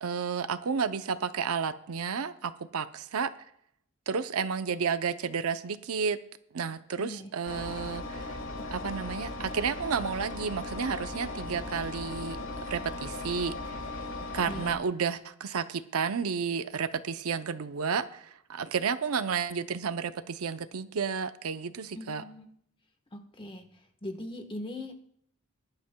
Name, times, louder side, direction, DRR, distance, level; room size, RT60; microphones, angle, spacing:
voice 1, 0.0-3.3 4.1-6.2 6.5-8.4 8.7-12.4 12.7-13.8 14.3-22.2, right 6 dB, 85° right, 0.6 m, -31 dB
voice 2, 7.0-7.3 14.5-14.8 21.9-22.5 23.1-23.7 24.0-24.9, left 1 dB, 25° left, 1.2 m, -40 dB
Engine, 7.5-14.7, left 2 dB, 65° left, 1.4 m, -38 dB
20.5 x 11.5 x 2.2 m
head